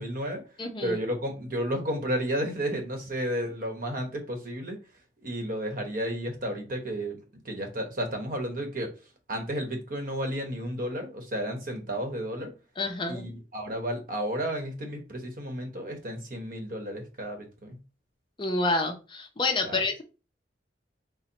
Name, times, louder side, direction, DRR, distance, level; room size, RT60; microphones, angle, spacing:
voice 1, 0.0-0.4 0.8-4.8 5.2-7.2 7.4-8.9 9.3-12.5 13.1-17.8 19.6-19.8, equal, 50° right, 4 dB, 1.0 m, -32 dB
voice 2, 0.6-1.0 12.8-13.3 18.4-20.0, left 3 dB, 25° left, 4 dB, 0.6 m, -28 dB
4.4 x 2.1 x 3.9 m, 0.31 s
head